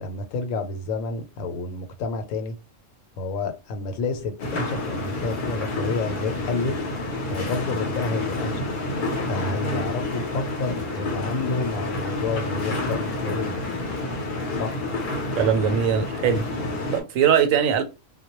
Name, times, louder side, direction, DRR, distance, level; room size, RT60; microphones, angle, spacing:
voice 1, 0.0-2.5 3.2-6.8 7.3-8.7 9.3-13.7 14.5-14.8, left 3 dB, 85° left, 1.0 m, -29 dB
sound 1, 4.4-17.0, left 2 dB, 50° left, 0.7 m, -29 dB
voice 2, 15.4-16.4 16.9-17.8, right 8 dB, 90° right, 1.0 m, -21 dB
2.2 x 2.1 x 2.8 m
omnidirectional pair, 1.3 m